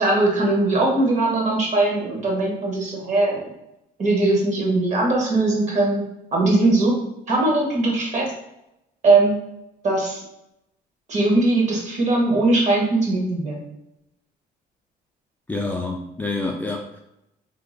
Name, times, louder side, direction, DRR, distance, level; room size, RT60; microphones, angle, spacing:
voice 1, 0.0-3.4 4.0-6.0 6.3-7.0 7.3-8.3 9.0-9.4 9.8-10.2 11.1-13.6, right 2 dB, 45° right, -1 dB, 1.2 m, -20 dB
voice 2, 15.5-17.0, left 2 dB, 10° left, 0 dB, 0.4 m, -27 dB
2.8 x 2.5 x 3.8 m, 0.87 s
cardioid pair, 110°, 17 cm